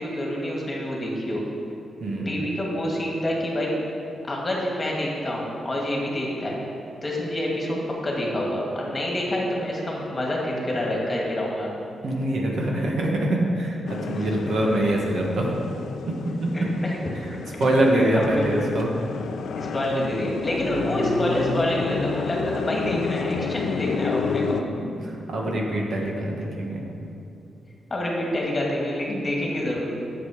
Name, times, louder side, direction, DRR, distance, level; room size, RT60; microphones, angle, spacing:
voice 1, 0.0-1.4 2.3-3.7 4.2-6.6 7.0-11.7 14.1-14.3 16.5-17.0 17.9-18.7 19.6-24.6 27.9-29.9, left 1 dB, 25° left, -3 dB, 2.0 m, -27 dB
voice 2, 2.0-2.3 12.0-15.5 16.0-16.7 17.6-18.9 24.5-26.8, right 1 dB, 60° right, -1 dB, 1.6 m, -24 dB
sound 1, 13.9-24.6, left 5 dB, 75° left, 0.5 m, -30 dB
9.1 x 7.7 x 5.0 m, 2.7 s
cardioid pair, 110°, 0 cm